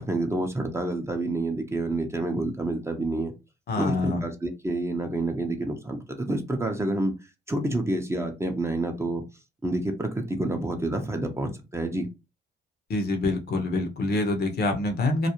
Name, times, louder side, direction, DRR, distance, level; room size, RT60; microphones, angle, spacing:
voice 1, 0.0-3.3 3.8-7.1 7.5-9.2 9.6-12.1, right 2 dB, 15° right, 4 dB, 0.5 m, -28 dB
voice 2, 3.7-4.2 12.9-15.3, left 2 dB, 55° left, 5 dB, 0.7 m, -26 dB
2.3 x 2.0 x 2.9 m, 0.27 s
cardioid pair, 90°, 20 cm